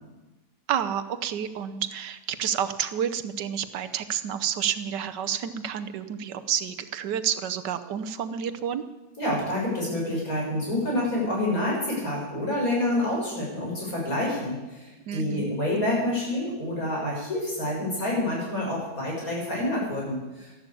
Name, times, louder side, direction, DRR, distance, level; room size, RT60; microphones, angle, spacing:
voice 1, 0.7-8.8 15.1-15.5, right 9 dB, 85° right, 10 dB, 1.5 m, -29 dB
voice 2, 9.2-20.5, left 1 dB, 55° left, -4 dB, 7.2 m, -28 dB
14.0 x 11.5 x 8.4 m, 1.1 s
omnidirectional pair, 1.8 m